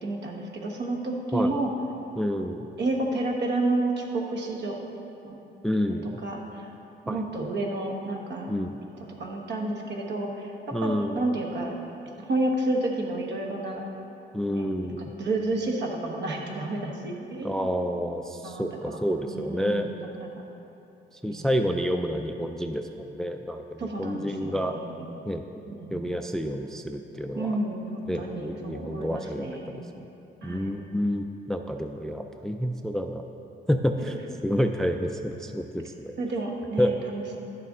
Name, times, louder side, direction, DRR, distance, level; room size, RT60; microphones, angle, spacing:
voice 1, 0.0-1.7 2.8-4.8 5.2-5.4 6.2-6.6 7.0-8.5 9.2-11.7 12.2-13.8 14.5-14.7 15.0-17.8 18.4-19.0 19.3-20.3 21.2-21.5 23.8-25.1 25.7-26.0 27.3-29.8 30.4-30.7 36.2-37.4, right 2 dB, 60° right, 0 dB, 1.3 m, -30 dB
voice 2, 2.2-2.7 5.6-6.1 7.1-7.5 8.5-8.8 10.7-11.2 14.3-15.1 17.4-19.9 21.2-24.8 25.3-25.4 25.9-27.6 28.1-30.1 30.4-33.2 33.7-34.2 34.4-36.1 36.8-36.9, equal, ahead, 6 dB, 0.3 m, -29 dB
10.5 x 6.7 x 3.6 m, 2.9 s
cardioid pair, 90°, 20 cm